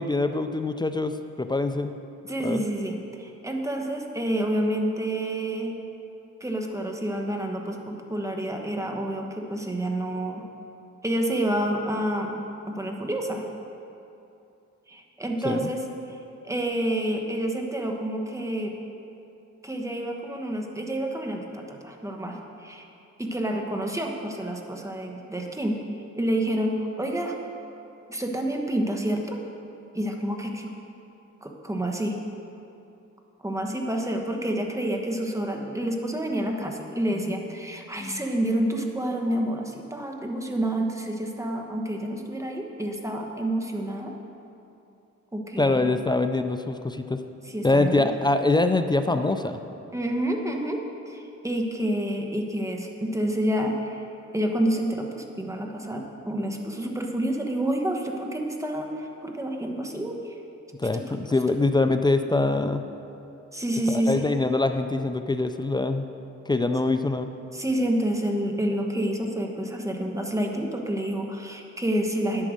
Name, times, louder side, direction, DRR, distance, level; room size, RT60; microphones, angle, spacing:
voice 1, 0.0-1.9 2.4-2.6 15.4-15.7 38.0-38.2 45.6-47.2 47.6-49.6 60.8-62.8 63.9-66.1 66.5-67.3, left 2 dB, 15° left, 8 dB, 0.4 m, -24 dB
voice 2, 2.3-5.7 6.4-10.4 11.0-12.4 12.7-13.4 14.9-16.2 16.4-18.7 19.6-22.9 23.2-25.9 26.1-27.3 28.1-29.4 29.9-30.7 31.4-32.2 33.4-44.1 45.3-45.9 47.4-48.1 49.9-50.8 51.1-54.0 54.3-60.4 60.9-61.1 61.5-61.6 63.5-64.3 67.5-72.5, right 1 dB, 10° right, 2 dB, 1.2 m, -28 dB
9.6 x 8.9 x 6.4 m, 2.8 s
cardioid pair, 105°, 29 cm